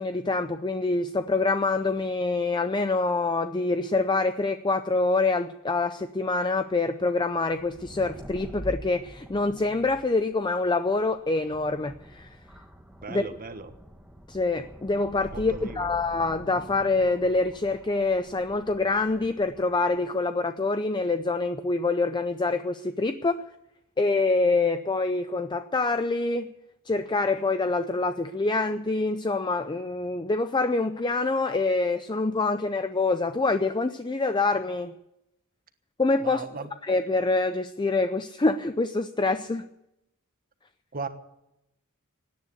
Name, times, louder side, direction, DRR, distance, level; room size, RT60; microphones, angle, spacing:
voice 1, 0.0-12.4 13.1-13.2 14.3-23.4 24.0-26.5 26.9-35.0 36.0-36.4 36.9-39.7, left 3 dB, 20° left, 9 dB, 0.5 m, -26 dB
sound 1, 7.5-20.0, equal, 5° right, 1.3 m, -45 dB
voice 2, 13.0-13.7 15.3-15.9 36.2-36.7 40.9-41.1, right 4 dB, 40° right, 9 dB, 1.3 m, -37 dB
17.5 x 10.0 x 8.2 m, 0.87 s
head